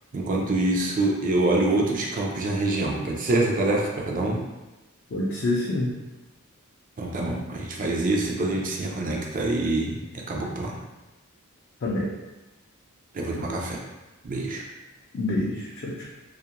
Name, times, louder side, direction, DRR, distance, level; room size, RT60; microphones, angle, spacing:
voice 1, 0.1-4.4 7.0-10.8 13.1-13.8 14.2-14.6, right 2 dB, 40° right, 0 dB, 0.4 m, -25 dB
voice 2, 5.1-6.0 11.8-12.1 15.1-16.1, left 2 dB, 50° left, -5 dB, 0.4 m, -27 dB
2.4 x 2.1 x 2.8 m, 1.1 s
head